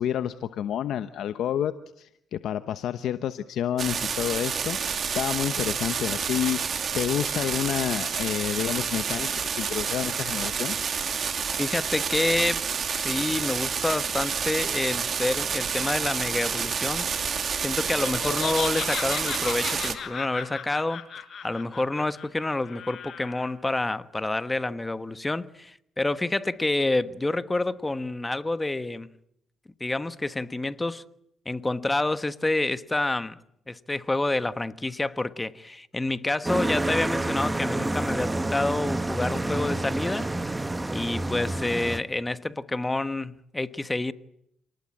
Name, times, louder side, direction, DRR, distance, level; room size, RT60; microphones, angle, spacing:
voice 1, 0.0-10.8, left 10 dB, 75° left, 1.0 m, -29 dB
sound 1, 3.8-19.9, right 6 dB, 50° right, 2.7 m, -29 dB
voice 2, 11.6-12.6 12.9-17.1 17.6-21.0 21.4-29.1 29.8-31.0 31.4-33.4 33.7-40.6 40.9-44.1, left 2 dB, 15° left, 1.2 m, -28 dB
Laughter, 17.9-23.5, left 7 dB, 55° left, 4.9 m, -36 dB
sound 2, 36.4-42.0, right 2 dB, 15° right, 1.3 m, -28 dB
29.0 x 19.5 x 8.7 m
cardioid pair, 90°, 0 cm